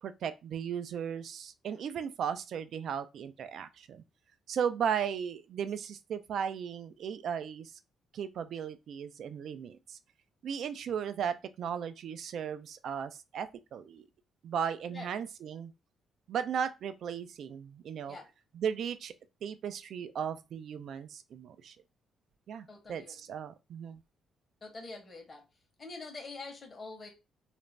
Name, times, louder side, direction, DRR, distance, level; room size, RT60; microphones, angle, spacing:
voice 1, 0.0-4.0 4.5-7.7 8.1-10.0 10.4-14.1 14.4-15.7 16.3-18.2 18.5-19.1 19.4-21.8 22.5-24.0, right 8 dB, 65° right, 0.3 m, -36 dB
voice 2, 22.7-23.4 24.6-25.5 25.8-27.1, left 3 dB, 35° left, 0.9 m, -45 dB
2.5 x 2.1 x 3.2 m
cardioid pair, 90°, 0 cm